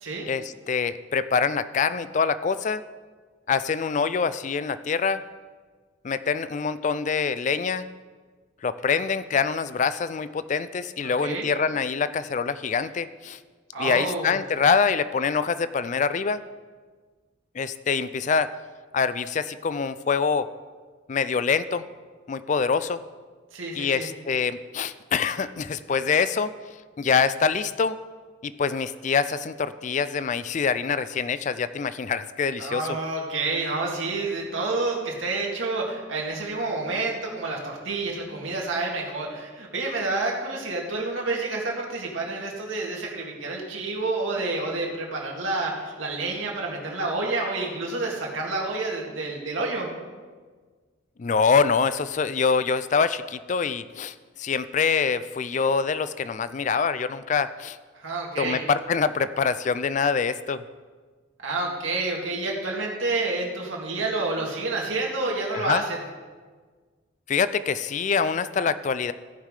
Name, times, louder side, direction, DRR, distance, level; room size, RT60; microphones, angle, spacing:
voice 1, 0.3-2.8 3.5-5.2 6.0-7.9 8.6-13.4 13.8-16.4 17.5-18.5 18.9-20.5 21.1-21.9 22.3-23.0 23.7-26.5 27.0-28.0 28.4-32.9 51.2-57.8 58.4-60.6 65.5-65.8 67.3-69.1, left 5 dB, 40° left, 14 dB, 0.3 m, -25 dB
voice 2, 11.0-11.5 13.7-14.3 23.5-24.1 32.6-49.9 57.9-58.6 61.4-66.0, right 3 dB, 85° right, -1 dB, 2.1 m, -29 dB
15.0 x 5.6 x 4.9 m, 1.5 s
head